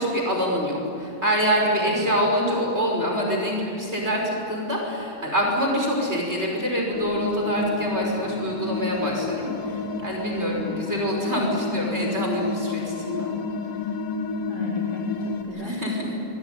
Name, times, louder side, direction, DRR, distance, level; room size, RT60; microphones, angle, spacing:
voice 1, 0.0-9.7 10.0-13.4 15.6-16.1, equal, 20° right, -1 dB, 5.6 m, -25 dB
voice 2, 1.8-2.1 10.4-10.8 14.5-15.8, left 2 dB, 30° left, -3 dB, 4.2 m, -35 dB
sound 1, 6.9-15.4, left 4 dB, 85° left, 3.5 m, -30 dB
26.0 x 21.0 x 9.5 m, 2.8 s
omnidirectional pair, 3.7 m